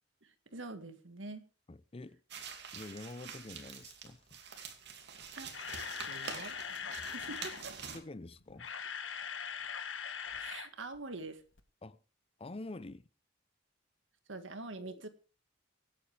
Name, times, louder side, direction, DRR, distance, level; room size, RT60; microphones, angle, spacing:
voice 1, 0.2-1.4 5.3-5.7 6.0-6.6 6.9-7.7 10.4-11.4 14.3-15.1, right 3 dB, 85° right, 1.8 m, -45 dB
voice 2, 1.7-2.2 2.7-4.4 7.9-8.7 11.8-12.0 12.4-13.1 14.8-15.0, left 2 dB, 30° left, 0.6 m, -47 dB
sound 1, 2.3-8.0, right 6 dB, 65° right, 2.6 m, -46 dB
Camera, 5.2-7.6 8.4-10.7 11.0-11.1 11.6-11.7, left 7 dB, 80° left, 1.5 m, -41 dB
24.5 x 8.8 x 3.5 m
head